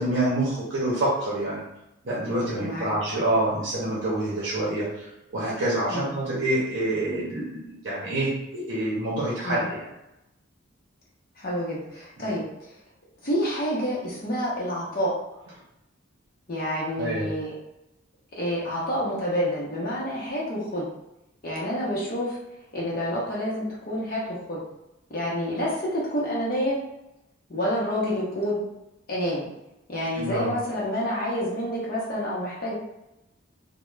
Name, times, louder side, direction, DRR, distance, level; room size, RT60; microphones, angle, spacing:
voice 1, 0.0-1.6 2.0-4.9 5.3-9.9 17.0-17.3 30.2-30.5, right 1 dB, 60° right, -7 dB, 0.7 m, -27 dB
voice 2, 2.6-2.9 5.9-6.1 9.4-9.6 11.4-12.5 13.2-15.1 16.5-17.5 18.4-20.9 21.4-22.4 22.7-24.6 25.1-26.8 27.5-28.6 29.1-29.5 29.9-32.7, equal, 45° left, -6 dB, 0.7 m, -28 dB
2.3 x 2.1 x 3.1 m, 0.90 s
head